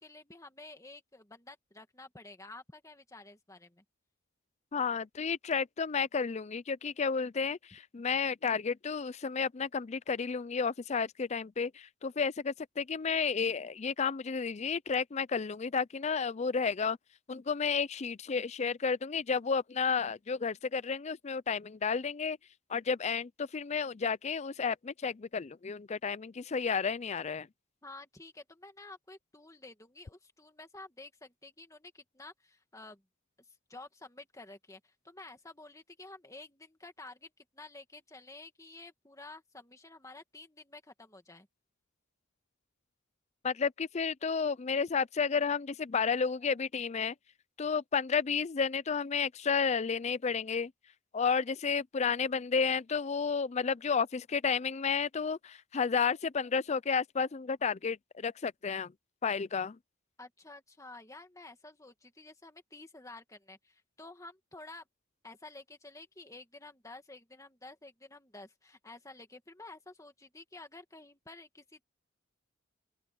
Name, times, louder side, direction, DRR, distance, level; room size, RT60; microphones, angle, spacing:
voice 1, 0.0-3.8 27.8-33.0 33.7-41.5 60.2-64.9 65.2-71.8, left 2 dB, 15° left, 2.1 m, -51 dB
voice 2, 4.7-17.0 17.3-22.4 22.7-27.5 43.4-47.1 47.6-50.7 51.1-58.9 59.2-59.8, left 5 dB, 35° left, 0.4 m, -32 dB
open air
head